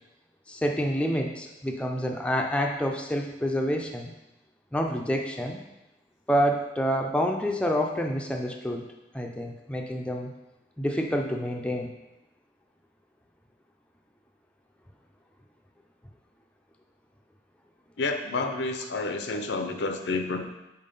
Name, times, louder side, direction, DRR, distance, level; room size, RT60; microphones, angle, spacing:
voice 1, 0.5-4.1 4.7-5.6 6.3-8.8 9.1-10.3 10.8-11.9, equal, 5° left, 1 dB, 0.4 m, -28 dB
voice 2, 18.0-20.4, left 3 dB, 80° left, 5 dB, 0.7 m, -29 dB
5.5 x 4.5 x 5.3 m, 0.97 s
head